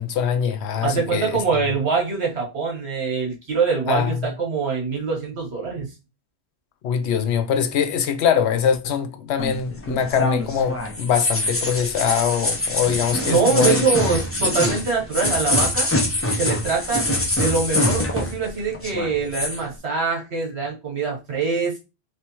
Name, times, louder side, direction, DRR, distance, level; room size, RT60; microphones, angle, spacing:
voice 1, 0.0-1.4 3.9-4.2 6.8-13.8, left 7 dB, 90° left, 0.9 m, -23 dB
voice 2, 0.8-5.9 13.2-15.9 16.4-17.1 17.4-21.8, right 5 dB, 85° right, 1.6 m, -24 dB
sound 1, 9.4-18.5 18.7-19.6, left 1 dB, 20° left, 0.4 m, -24 dB
3.3 x 3.2 x 2.9 m
omnidirectional pair, 1.1 m